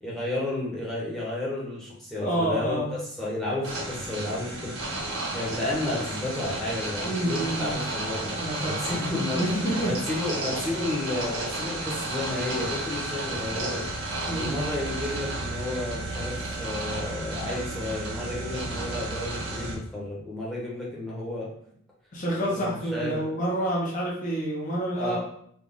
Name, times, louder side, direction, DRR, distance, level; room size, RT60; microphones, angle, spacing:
voice 1, 0.0-4.7 5.3-8.3 8.7-9.4 9.8-13.8 14.3-21.5 22.5-23.2 24.9-25.2, left 2 dB, ahead, -6 dB, 0.9 m, -32 dB
voice 2, 2.1-2.9 7.0-7.8 8.4-8.8 9.3-9.9 14.3-14.5 22.1-25.2, right 1 dB, 35° left, -5 dB, 0.8 m, -28 dB
sound 1, 3.6-19.8, right 2 dB, 70° right, 1.1 m, -32 dB
4.0 x 2.3 x 3.6 m, 0.66 s
head